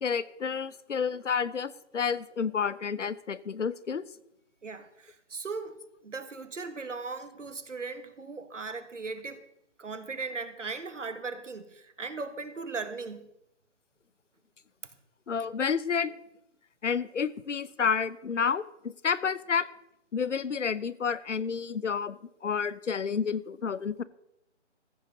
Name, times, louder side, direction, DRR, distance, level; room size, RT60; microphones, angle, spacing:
voice 1, 0.0-4.0 15.3-16.1 16.8-19.7 20.1-24.0, left 6 dB, 85° left, 18 dB, 0.9 m, -30 dB
voice 2, 4.6-5.8 6.0-9.4 9.8-13.3, right 4 dB, 90° right, 10 dB, 1.8 m, -38 dB
15.0 x 6.4 x 6.7 m, 0.80 s
hypercardioid pair, 160°, 36 cm